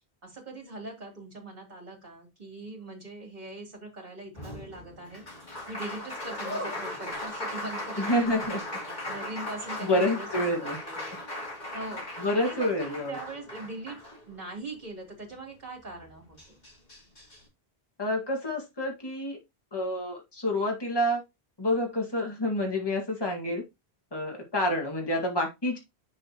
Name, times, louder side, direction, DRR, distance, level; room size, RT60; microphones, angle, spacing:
voice 1, 0.2-5.2 5.7-8.6 9.1-11.2 11.7-14.0 14.3-16.4, right 2 dB, 45° right, 0 dB, 3.4 m, -41 dB
Applause, 4.3-14.6 16.0-16.1 16.4-17.4, left 1 dB, 45° left, 3.2 m, -37 dB
voice 2, 8.0-8.6 9.8-10.8 12.2-13.2 18.0-19.4 19.7-21.2 21.6-23.6 24.1-25.8, left 1 dB, 25° left, 1 dB, 2.0 m, -28 dB
8.0 x 6.7 x 3.0 m, 0.22 s
omnidirectional pair, 1.1 m